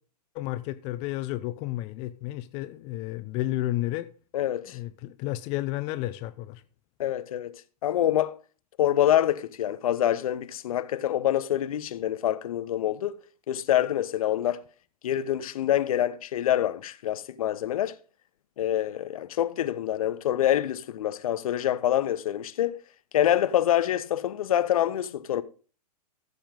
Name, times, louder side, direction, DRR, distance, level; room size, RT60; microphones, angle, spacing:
voice 1, 0.3-4.1 4.7-6.6, left 16 dB, 30° left, 0.5 m, -32 dB
voice 2, 4.3-4.8 7.0-8.4 8.8-13.2 13.5-14.6 15.0-18.0 18.6-22.8 23.1-25.4, left 11 dB, 55° left, 0.8 m, -26 dB
14.5 x 7.1 x 3.6 m
figure-of-eight pair, 110°, 21 cm